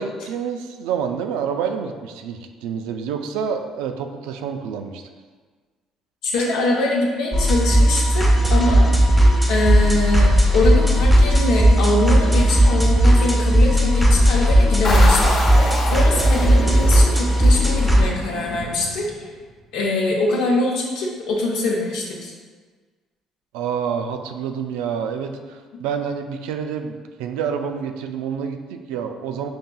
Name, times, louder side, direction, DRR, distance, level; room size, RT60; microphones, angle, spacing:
voice 1, 0.0-5.1 23.5-29.5, right 7 dB, 90° right, 6 dB, 0.3 m, -28 dB
voice 2, 6.2-9.1 9.5-19.3 19.7-22.3, left 2 dB, 80° left, -1 dB, 0.7 m, -23 dB
sound 1, 7.3-18.0, equal, ahead, 0.7 m, -16 dB
sound 2, 14.8-19.4, left 1 dB, 50° left, 0.9 m, -27 dB
5.4 x 2.8 x 2.2 m, 1.5 s
supercardioid pair, 85°, 0 cm